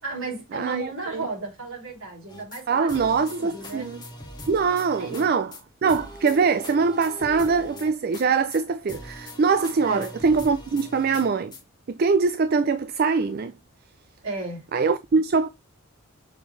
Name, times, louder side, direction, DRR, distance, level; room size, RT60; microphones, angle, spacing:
voice 1, 0.0-3.9 5.0-5.4 9.8-10.1 14.2-14.6, right 3 dB, 60° right, 3.5 m, -34 dB
voice 2, 0.5-1.3 2.7-4.0 4.5-5.5 5.8-11.5 11.9-13.5 14.7-15.5, right 5 dB, 45° right, 0.3 m, -23 dB
sound 1, 2.3-2.6 2.9-5.3 5.5-5.6 5.9-8.2 8.5-8.6 8.9-11.6, left 1 dB, 20° left, 1.4 m, -41 dB
6.6 x 4.4 x 3.2 m
head